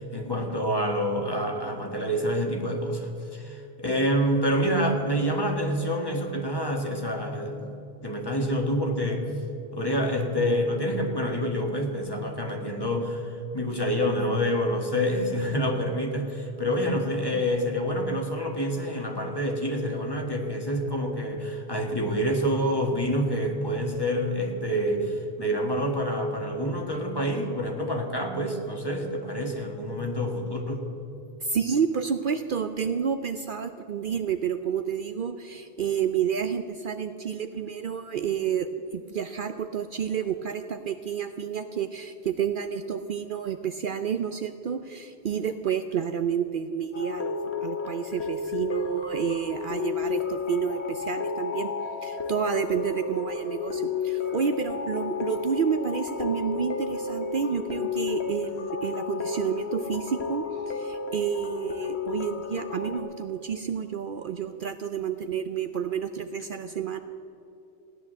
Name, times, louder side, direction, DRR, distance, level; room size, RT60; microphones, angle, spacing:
voice 1, 0.0-7.7 8.0-9.3 9.7-30.9, equal, 20° left, 2 dB, 1.7 m, -27 dB
voice 2, 31.4-47.3 47.6-51.7 52.0-67.0, right 7 dB, 60° right, 9 dB, 0.7 m, -30 dB
sound 1, 46.9-63.0, left 5 dB, 85° left, 1.6 m, -32 dB
16.5 x 10.5 x 7.6 m, 2.9 s
omnidirectional pair, 1.1 m